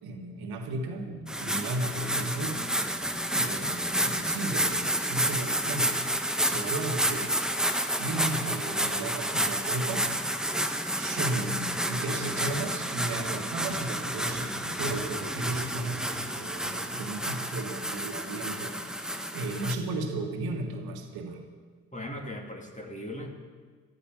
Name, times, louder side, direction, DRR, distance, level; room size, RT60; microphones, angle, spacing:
voice 1, 0.0-2.6 3.3-6.0 6.4-7.3 8.0-10.1 11.0-21.4, right 2 dB, 65° right, 4 dB, 1.8 m, -35 dB
sound 1, 1.3-19.7, right 1 dB, ahead, 1.3 m, -30 dB
voice 2, 21.9-23.3, left 1 dB, 20° left, 2 dB, 2.9 m, -38 dB
13.5 x 12.0 x 7.2 m, 1.5 s
figure-of-eight pair, 45°, 41 cm